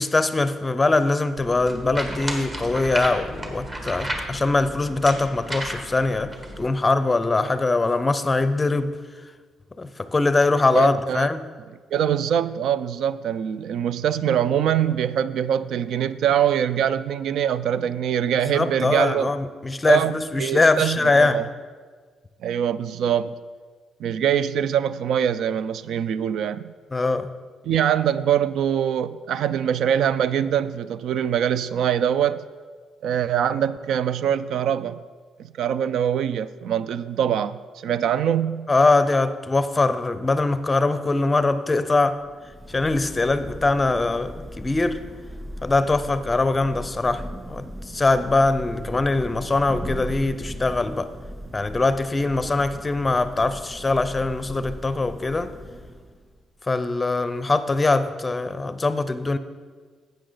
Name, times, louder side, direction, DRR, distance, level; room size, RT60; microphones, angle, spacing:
voice 1, 0.0-9.0 9.8-11.4 18.5-21.4 26.9-27.3 38.7-42.2 42.7-45.0 45.6-51.1 51.5-55.5 56.7-59.4, left 3 dB, 20° left, 0.5 m, -22 dB
sound 1, 1.4-6.7, right 1 dB, 30° right, 1.5 m, -33 dB
voice 2, 10.7-11.3 11.9-19.3 19.9-21.5 22.4-23.3 24.0-26.7 27.6-32.4 33.0-35.0 35.6-38.7, right 9 dB, 75° right, 0.3 m, -23 dB
Thunder / Rain, 42.2-56.4, equal, 15° right, 2.4 m, -38 dB
11.5 x 8.1 x 3.9 m
cardioid pair, 90°, 0 cm